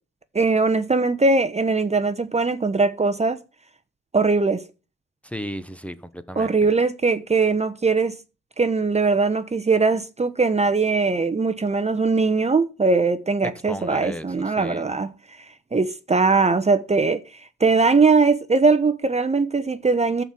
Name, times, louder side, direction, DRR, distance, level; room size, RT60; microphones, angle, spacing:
voice 1, 0.3-3.4 4.1-4.6 6.4-8.2 8.6-15.1 15.7-17.2 17.6-20.2, right 4 dB, 20° right, 1.0 m, -20 dB
voice 2, 5.2-6.7 13.7-14.9, equal, 5° left, 1.0 m, -35 dB
12.0 x 4.7 x 7.5 m
cardioid pair, 90°, 30 cm